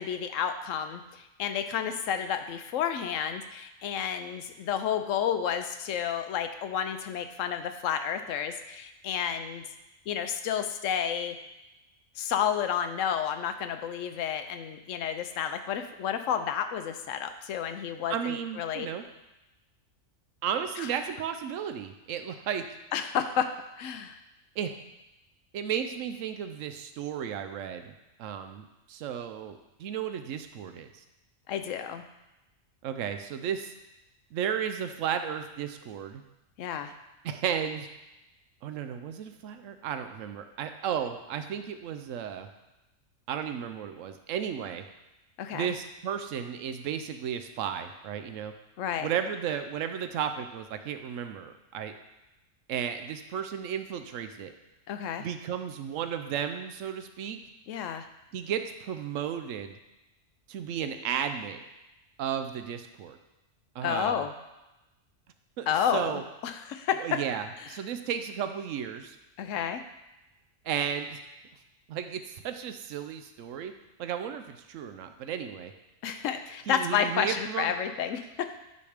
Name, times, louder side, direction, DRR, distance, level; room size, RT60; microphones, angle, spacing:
voice 1, 0.0-9.6 10.1-11.4 12.2-18.9 22.9-23.5 23.8-24.2 31.5-32.0 36.6-36.9 45.4-45.7 48.8-49.1 54.9-55.3 57.7-58.1 63.8-64.3 65.7-67.0 69.4-69.8 76.0-78.5, left 8 dB, 80° left, 8 dB, 1.0 m, -31 dB
voice 2, 18.1-19.0 20.4-22.6 24.6-24.7 25.5-27.9 28.2-31.0 32.8-33.7 34.3-36.2 36.9-37.0 37.2-37.9 38.6-42.5 43.3-44.8 45.5-48.5 49.0-51.9 52.7-54.5 55.2-57.4 58.3-59.8 60.5-61.6 62.2-63.2 63.7-64.2 65.6-66.2 67.0-69.2 70.6-71.2 71.9-73.7 74.0-75.7 76.7-77.7, right 8 dB, 85° right, 8 dB, 1.0 m, -34 dB
9.4 x 3.4 x 5.0 m, 0.98 s
omnidirectional pair, 1.3 m